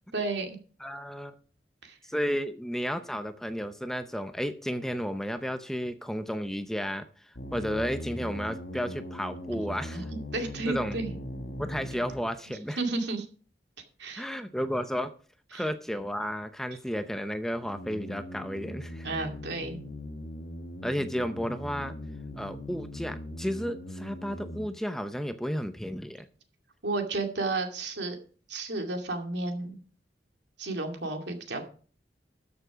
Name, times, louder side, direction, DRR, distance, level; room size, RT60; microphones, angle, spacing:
voice 1, 0.1-0.5 1.8-2.0 9.9-10.0 10.3-11.1 12.8-13.3 14.0-14.3 15.5-15.6 19.0-19.8 26.8-28.2 28.5-29.8 30.6-31.6, right 3 dB, 75° right, 4 dB, 2.4 m, -32 dB
voice 2, 0.8-1.3 2.0-10.1 10.7-11.0 11.6-12.8 14.2-15.1 15.5-19.1 20.8-21.9 22.3-26.3, equal, ahead, 9 dB, 0.6 m, -33 dB
sound 1, 7.4-12.4 17.6-24.7, left 1 dB, 60° left, 1.5 m, -40 dB
13.0 x 6.9 x 5.0 m, 0.41 s
head